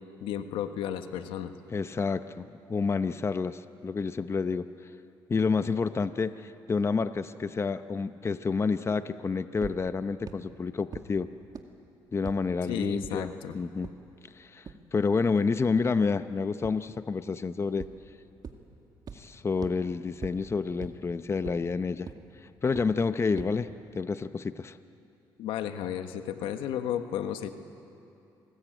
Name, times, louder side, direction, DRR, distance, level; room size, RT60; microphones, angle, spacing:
voice 1, 0.2-1.5 12.7-13.5 25.4-27.5, left 10 dB, 90° left, 8 dB, 1.4 m, -33 dB
voice 2, 1.7-4.7 5.3-11.3 12.1-13.9 14.3-17.9 19.1-22.1 22.6-23.7 23.9-24.8, left 4 dB, 30° left, 11 dB, 0.8 m, -29 dB
sound 1, 9.6-9.7 10.3-10.4 10.9-11.0 11.5-11.6 12.3-12.4 13.0-13.1 13.8-13.9 14.7-14.8 16.6-16.7 17.8-17.9 18.4-18.5 19.1-19.2 19.6-19.7 20.2-20.3 20.8-20.9 21.5-21.6 22.1-22.2 22.8-22.9 23.4-23.5, right 6 dB, 45° right, 2.2 m, -39 dB
27.0 x 20.0 x 9.0 m, 2.6 s
cardioid pair, 85°, 9 cm